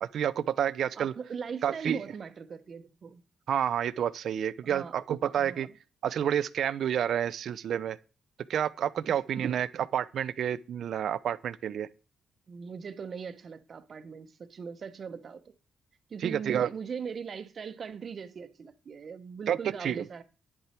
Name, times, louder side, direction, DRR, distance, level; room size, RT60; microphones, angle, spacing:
voice 1, 0.0-1.1 1.6-2.0 3.5-5.7 6.0-8.0 8.5-9.7 9.9-11.9 16.2-16.7 19.5-20.0, right 9 dB, 70° right, 0.6 m, -29 dB
voice 2, 0.9-3.2 4.6-5.0 5.3-5.7 9.0-9.4 12.5-15.5 16.1-20.2, right 6 dB, 55° right, 1.1 m, -40 dB
10.0 x 8.2 x 4.4 m
cardioid pair, 70°, 0 cm